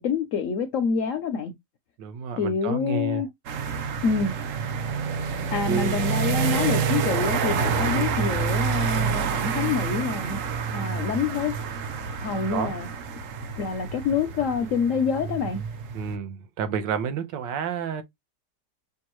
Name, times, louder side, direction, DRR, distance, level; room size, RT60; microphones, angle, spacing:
voice 1, 0.0-1.5 2.4-3.3 4.0-4.3 5.5-10.4 10.7-11.5 12.2-12.9 13.6-15.6, left 6 dB, 70° left, 0.7 m, -26 dB
voice 2, 2.0-3.2 5.7-6.1 6.4-6.6 12.5-12.7 15.9-18.0, right 7 dB, 80° right, 1.5 m, -30 dB
sound 1, 3.5-16.2, right 6 dB, 60° right, 0.9 m, -28 dB
6.0 x 2.3 x 3.0 m
omnidirectional pair, 1.9 m